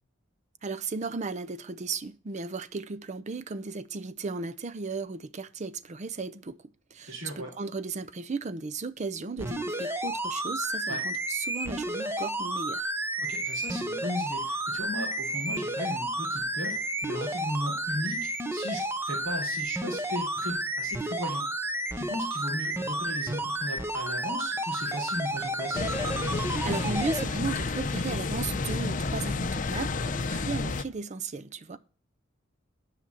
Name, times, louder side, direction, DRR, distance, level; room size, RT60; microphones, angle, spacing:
voice 1, 0.6-6.6 6.9-12.9 26.6-31.8, right 4 dB, 35° right, 0.5 m, -35 dB
voice 2, 7.1-7.5 10.9-11.0 13.2-25.8, left 1 dB, 75° right, 3.8 m, -36 dB
sound 1, 9.4-27.2 27.8-27.9, right 1 dB, 10° right, 0.9 m, -31 dB
sound 2, 25.7-30.8, left 3 dB, 40° left, 0.7 m, -30 dB
10.0 x 5.8 x 8.2 m
head